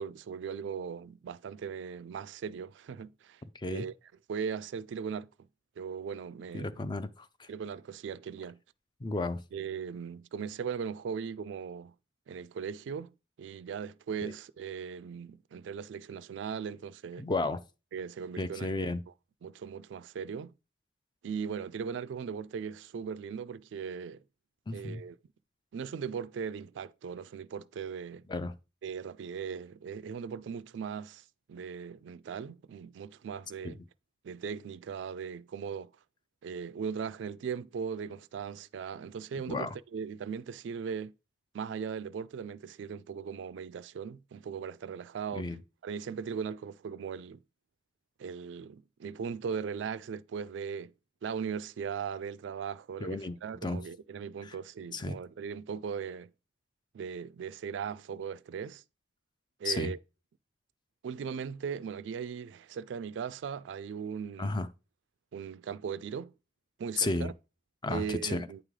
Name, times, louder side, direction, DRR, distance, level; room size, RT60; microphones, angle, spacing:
voice 1, 0.0-3.4 3.7-3.9 4.3-5.3 5.8-6.8 7.5-8.6 9.5-11.9 12.3-17.3 17.9-18.9 19.4-20.5 21.2-24.2 24.7-25.2 25.7-28.2 28.8-31.2 31.5-33.8 34.2-35.9 36.4-41.1 41.5-45.5 45.8-47.4 48.2-50.9 51.2-56.3 56.9-58.8 59.6-60.0 61.0-64.6 65.3-66.3 66.8-67.3 67.9-68.6, right 6 dB, 75° right, 0.3 m, -38 dB
voice 2, 3.5-3.9 6.5-7.5 9.0-9.4 14.2-14.3 17.2-17.6 18.4-19.0 24.7-25.0 28.3-28.5 33.6-33.7 39.5-39.7 45.3-45.6 53.0-53.4 53.6-53.8 54.4-54.6 54.9-55.2 59.6-59.9 64.4-64.7 67.0-67.3 67.8-68.5, left 3 dB, 25° left, 0.4 m, -33 dB
9.0 x 3.2 x 3.6 m
head